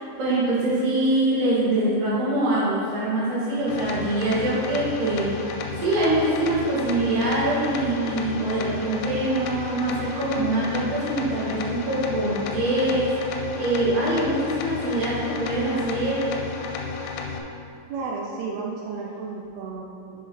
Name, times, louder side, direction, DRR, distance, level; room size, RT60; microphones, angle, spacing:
voice 1, 0.0-16.3, right 1 dB, 55° right, -8 dB, 3.4 m, -24 dB
sound 1, 3.7-17.4, left 5 dB, 85° left, 2.9 m, -33 dB
voice 2, 17.9-20.3, right 4 dB, 80° right, -2 dB, 2.2 m, -33 dB
7.9 x 6.7 x 4.2 m, 2.5 s
omnidirectional pair, 5.3 m